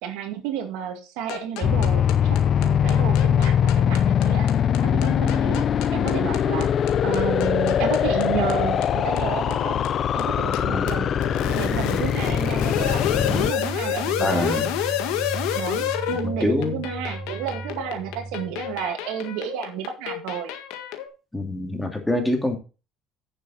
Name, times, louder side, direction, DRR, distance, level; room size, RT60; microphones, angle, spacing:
voice 1, 0.0-4.5 4.8-5.6 5.9-6.7 7.0-9.9 10.1-11.1 11.5-14.7 15.5-20.5, right 9 dB, 80° right, 2.1 m, -31 dB
sound 1, 1.3-21.1, left 11 dB, 80° left, 1.6 m, -30 dB
sound 2, 1.6-13.5, left 9 dB, 50° left, 0.6 m, -22 dB
voice 2, 10.7-11.1 14.2-14.7 16.2-16.8 21.3-22.6, left 1 dB, 10° left, 2.7 m, -25 dB
sound 3, 11.1-18.9, right 3 dB, 35° right, 1.3 m, -36 dB
10.0 x 7.0 x 4.1 m
supercardioid pair, 90°, 0 cm